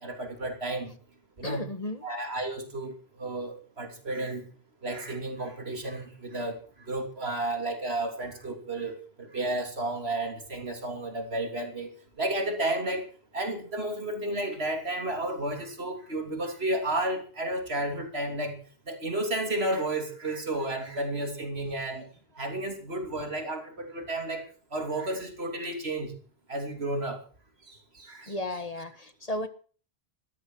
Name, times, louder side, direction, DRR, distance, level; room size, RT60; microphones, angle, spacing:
voice 1, 0.0-0.9 1.4-1.6 2.0-4.4 4.8-6.6 6.9-13.1 13.3-18.6 18.9-22.1 22.4-24.5 24.7-26.1 26.5-27.2 27.7-28.4, right 1 dB, 80° right, 5 dB, 3.5 m, -32 dB
voice 2, 1.4-2.0 28.3-29.5, left 1 dB, 35° left, 10 dB, 1.6 m, -34 dB
14.0 x 13.5 x 6.3 m, 0.41 s
omnidirectional pair, 1.1 m